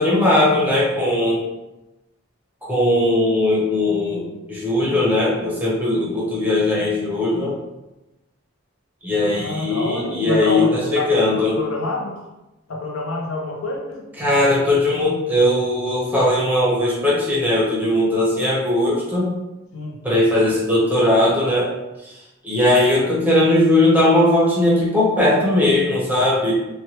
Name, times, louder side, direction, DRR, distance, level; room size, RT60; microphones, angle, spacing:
voice 1, 0.0-1.4 2.6-7.6 9.0-11.6 14.2-19.3 20.0-21.7 22.0-22.1 22.4-26.5, left 1 dB, 10° right, -5 dB, 0.6 m, -19 dB
voice 2, 9.2-12.2 12.7-14.1 19.7-20.0, left 2 dB, 80° left, 0 dB, 0.6 m, -27 dB
3.0 x 2.2 x 2.9 m, 0.98 s
head